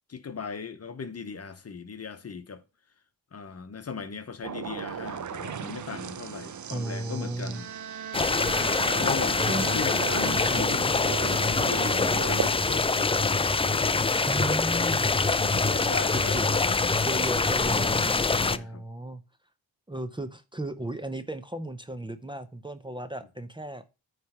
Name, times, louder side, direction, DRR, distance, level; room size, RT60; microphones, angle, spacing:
voice 1, 0.1-2.6 3.3-7.7 8.1-8.3 8.6-9.4 9.7-11.0 11.3-13.1 13.6-14.1 15.3-17.3 18.5-18.8, left 5 dB, 40° left, 1.1 m, -38 dB
sound 1, 4.4-12.5, right 8 dB, 50° right, 0.7 m, -37 dB
voice 2, 6.7-7.6 9.5-9.7 10.4-11.0 14.3-15.1 16.1-16.5 17.0-19.2 19.9-24.0, right 1 dB, 15° right, 0.7 m, -35 dB
sound 2, 7.5-11.3, right 8 dB, 75° right, 1.5 m, -39 dB
sound 3, 8.1-18.6, left 3 dB, 15° left, 0.4 m, -25 dB
9.3 x 3.4 x 5.8 m
cardioid pair, 85°, 37 cm